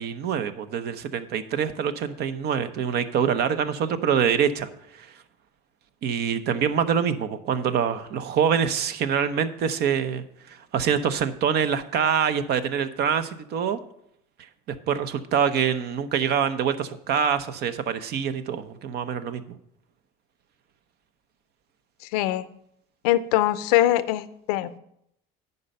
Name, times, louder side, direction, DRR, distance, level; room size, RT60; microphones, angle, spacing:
voice 1, 0.0-5.1 6.0-13.8 14.7-19.4, right 7 dB, 60° right, 12 dB, 0.8 m, -25 dB
voice 2, 22.1-22.5 23.0-24.8, left 14 dB, 90° left, 15 dB, 0.6 m, -22 dB
9.6 x 5.4 x 6.6 m, 0.75 s
supercardioid pair, 105°, 19 cm